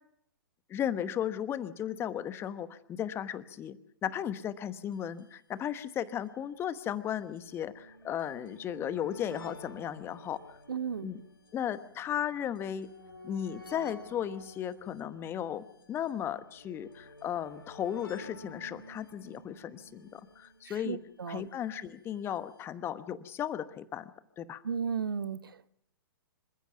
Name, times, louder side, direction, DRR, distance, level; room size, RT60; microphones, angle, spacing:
voice 1, 0.7-10.6 11.0-11.2 11.5-12.9 13.2-21.0 21.3-24.1 24.4-24.6, left 10 dB, 20° left, 1.1 m, -35 dB
sound 1, 4.9-5.0 5.2-5.3 6.1-21.4 22.4-22.5 22.6-22.7, left 1 dB, 80° left, 3.8 m, -51 dB
voice 2, 10.7-11.1 20.8-21.5 24.6-25.7, right 6 dB, 70° right, 1.0 m, -34 dB
26.5 x 15.5 x 7.0 m
figure-of-eight pair, 115°, 12 cm